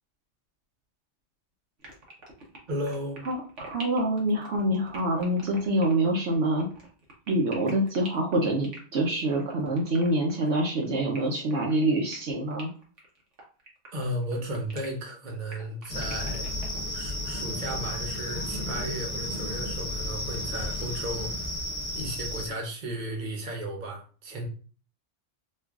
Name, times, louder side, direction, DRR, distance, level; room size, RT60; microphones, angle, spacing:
sound 1, 1.8-16.8, right 2 dB, 85° right, 1.3 m, -46 dB
voice 1, 2.7-3.2 13.9-16.5 16.9-21.5 21.9-24.5, right 1 dB, 45° right, 1 dB, 0.9 m, -34 dB
voice 2, 3.3-6.7 7.3-12.7, right 1 dB, 70° right, 0 dB, 0.9 m, -26 dB
sound 2, 15.9-22.5, left 1 dB, 40° left, 0.9 m, -33 dB
4.4 x 2.4 x 2.3 m, 0.40 s
omnidirectional pair, 1.2 m